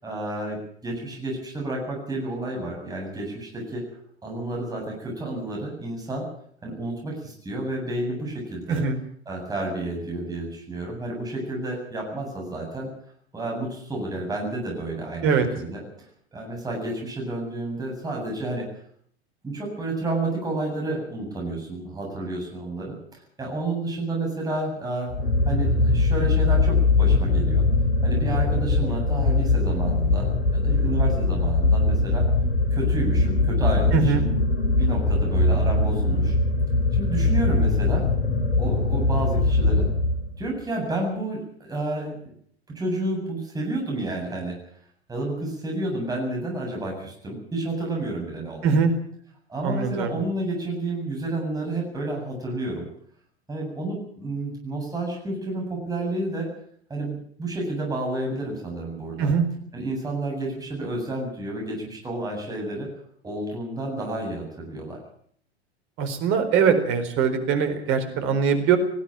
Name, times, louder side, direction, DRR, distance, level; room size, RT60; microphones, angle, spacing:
voice 1, 0.0-3.8 4.2-6.3 6.6-8.8 9.3-12.9 13.3-15.3 15.6-15.8 16.3-18.7 19.4-25.1 25.5-27.6 28.0-32.3 32.7-34.3 34.7-36.3 36.9-38.1 38.6-39.9 40.4-42.1 42.7-44.5 45.1-48.9 49.5-52.9 53.5-56.5 56.9-59.3 59.7-62.9 63.2-65.0, right 2 dB, 10° right, -1 dB, 8.0 m, -30 dB
sound 1, 25.1-40.4, left 2 dB, 70° left, 3.6 m, -21 dB
voice 2, 33.9-34.2 48.6-48.9 49.6-50.1 59.2-59.4 66.0-68.8, right 6 dB, 35° right, 8 dB, 4.3 m, -22 dB
20.5 x 15.5 x 8.9 m, 0.63 s
figure-of-eight pair, 95°, 33 cm